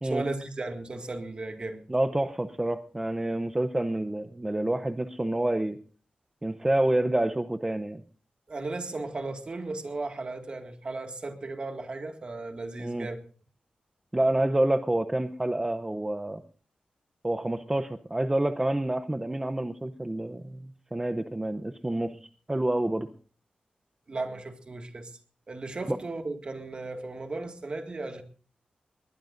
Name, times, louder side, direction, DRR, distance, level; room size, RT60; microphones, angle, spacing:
voice 1, 0.0-1.8 8.5-13.2 24.1-25.1 25.5-28.2, right 2 dB, 40° right, 1.9 m, -35 dB
voice 2, 1.9-5.8 6.4-8.0 12.8-13.1 14.1-16.4 17.2-23.1 25.9-26.0, right 1 dB, 15° right, 0.7 m, -28 dB
21.0 x 20.0 x 2.6 m
wide cardioid pair, 160°, 3 cm